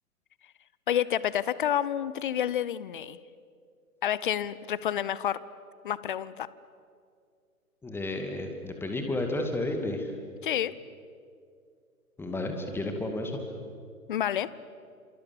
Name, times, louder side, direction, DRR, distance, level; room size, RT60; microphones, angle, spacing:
voice 1, 0.9-3.2 4.0-5.4 5.8-6.5 10.4-10.8 14.1-14.5, left 10 dB, 35° left, 19 dB, 0.8 m, -29 dB
voice 2, 7.8-10.1 12.2-13.4, left 2 dB, 5° left, 4 dB, 2.3 m, -32 dB
29.5 x 27.5 x 7.3 m, 2.3 s
figure-of-eight pair, 125°, 45 cm